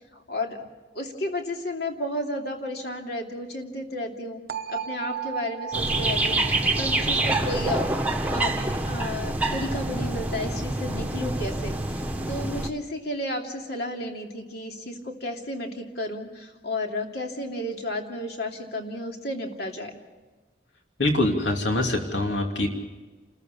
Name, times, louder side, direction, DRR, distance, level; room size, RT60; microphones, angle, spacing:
voice 1, 0.1-0.6 0.9-4.4 4.7-7.9 8.3-20.0, left 1 dB, 55° left, 2 dB, 2.8 m, -32 dB
sound 1, 4.5-10.3, right 9 dB, 50° right, 0.9 m, -38 dB
sound 2, 5.7-12.7, right 2 dB, 10° right, 1.3 m, -26 dB
voice 2, 21.0-22.7, left 1 dB, 75° left, 2 dB, 2.8 m, -24 dB
29.5 x 14.0 x 6.9 m, 1.3 s
head